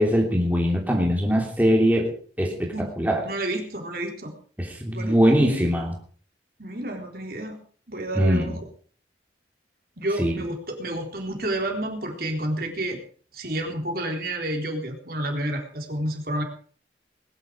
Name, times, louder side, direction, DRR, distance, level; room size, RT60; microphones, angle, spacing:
voice 1, 0.0-2.1 2.4-3.2 4.6-6.0 8.2-8.6 10.2-10.3, equal, 10° right, 0 dB, 2.9 m, -21 dB
voice 2, 3.3-4.3 4.9-5.2 6.6-7.6 7.9-8.6 10.0-13.0 13.3-16.4, right 1 dB, 55° right, 2 dB, 3.9 m, -30 dB
20.5 x 11.0 x 5.1 m, 0.44 s
head